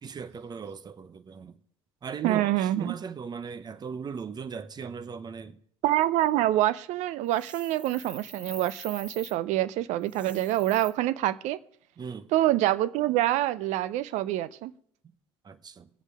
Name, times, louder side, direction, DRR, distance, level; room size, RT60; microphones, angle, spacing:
voice 1, 0.0-1.6 2.0-5.6 12.0-12.3 15.4-15.9, right 6 dB, 30° right, 0.9 m, -38 dB
voice 2, 2.2-3.0 5.8-11.6 12.3-14.7, right 14 dB, 55° right, 0.6 m, -26 dB
sound 1, 7.3-9.4 10.0-10.9, right 1 dB, 10° right, 1.2 m, -46 dB
21.0 x 8.1 x 3.6 m
hypercardioid pair, 65°, 14 cm